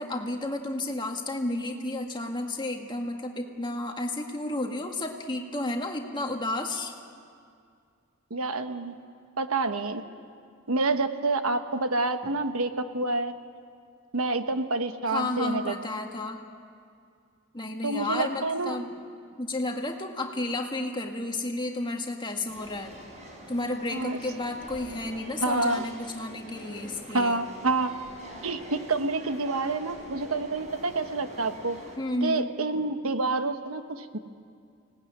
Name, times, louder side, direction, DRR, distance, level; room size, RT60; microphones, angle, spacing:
voice 1, 0.0-6.9 15.1-16.4 17.5-18.9 19.4-22.9 23.5-27.4 32.0-32.5, left 2 dB, 20° left, 2 dB, 1.8 m, -32 dB
voice 2, 8.3-8.9 9.4-10.0 10.7-13.3 14.1-15.7 17.8-18.8 23.9-24.2 25.4-25.9 27.1-28.0 28.4-31.8 32.2-34.2, right 3 dB, 80° right, 8 dB, 1.2 m, -28 dB
sound 1, 22.5-32.0, equal, 35° right, 4.2 m, -45 dB
25.0 x 18.5 x 9.9 m, 2.3 s
head